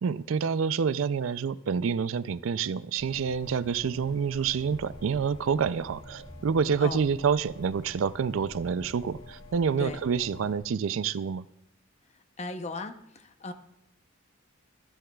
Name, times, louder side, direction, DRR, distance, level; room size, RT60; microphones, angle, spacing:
voice 1, 0.0-11.4, right 6 dB, 85° right, 17 dB, 0.4 m, -28 dB
sound 1, 3.0-10.6, left 2 dB, 75° left, 4.2 m, -48 dB
voice 2, 12.4-13.5, left 3 dB, 35° left, 8 dB, 0.8 m, -37 dB
14.5 x 13.5 x 2.3 m, 0.79 s
head